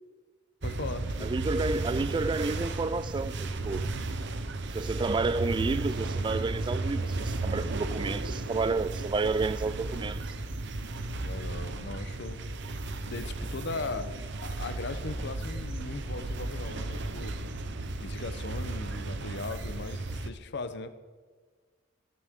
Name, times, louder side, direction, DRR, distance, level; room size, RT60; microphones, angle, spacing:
voice 1, 0.6-1.3 11.2-12.4 13.1-14.2 14.4-17.4 18.0-20.9, left 3 dB, 60° left, 0.8 m, -38 dB
sound 1, 0.6-20.3, right 2 dB, 60° right, 0.8 m, -34 dB
voice 2, 1.2-3.9 4.7-10.4, right 3 dB, 25° right, 0.3 m, -30 dB
18.5 x 10.5 x 3.7 m
head